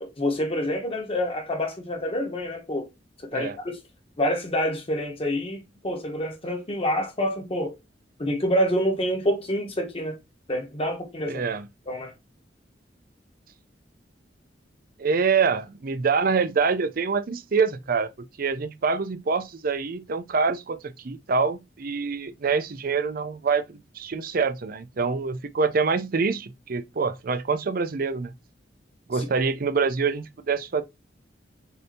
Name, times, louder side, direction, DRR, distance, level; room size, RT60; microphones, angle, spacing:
voice 1, 0.0-2.9 3.3-3.8 4.2-7.8 8.2-10.2 10.5-11.4 11.9-12.1, equal, 35° left, 1.2 m, -27 dB
voice 2, 11.3-11.7 15.0-18.1 18.4-28.3 29.1-30.8, right 5 dB, 55° right, 0.5 m, -25 dB
6.7 x 2.8 x 2.8 m
head